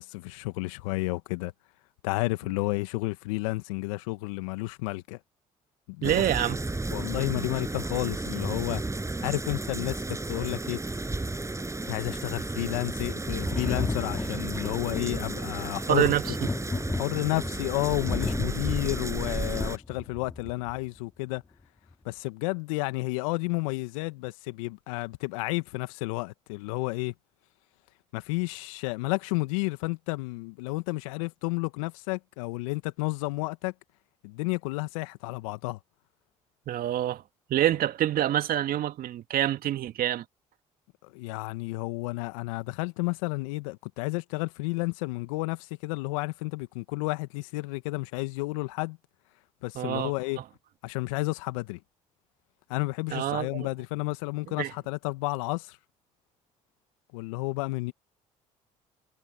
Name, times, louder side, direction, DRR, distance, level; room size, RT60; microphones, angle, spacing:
voice 1, 0.0-1.5 2.0-5.2 5.9-6.2 6.9-8.8 9.2-10.8 11.8-16.1 17.0-21.4 22.1-27.1 28.1-33.7 34.2-35.8 41.0-49.0 49.6-50.4 50.8-51.8 52.7-55.8 57.1-57.9, left 23 dB, 80° left, 1.8 m, -31 dB
sound 1, 6.0-19.8, right 2 dB, 15° right, 6.9 m, -33 dB
voice 2, 6.0-6.6 15.9-16.5 36.7-37.2 37.5-40.2 49.8-50.1 53.1-53.7 54.6-54.7, right 12 dB, 60° right, 2.3 m, -26 dB
Thunder, 13.4-20.8 21.9-22.0, left 3 dB, 20° left, 3.2 m, -34 dB
hypercardioid pair, 55°, 17 cm